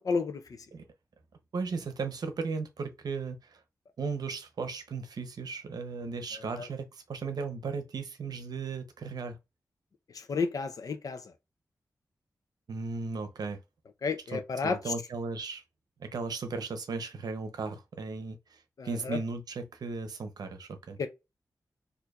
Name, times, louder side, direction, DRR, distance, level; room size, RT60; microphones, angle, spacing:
voice 1, 0.0-0.6 6.3-6.7 10.1-11.3 14.0-14.9 18.8-19.2 21.0-21.1, left 4 dB, 55° left, 0.6 m, -32 dB
voice 2, 1.5-3.6 4.0-9.4 12.7-13.6 14.3-15.6 16.0-21.0, right 4 dB, 70° right, 0.7 m, -36 dB
4.4 x 2.7 x 2.4 m
wide cardioid pair, 160°, 7 cm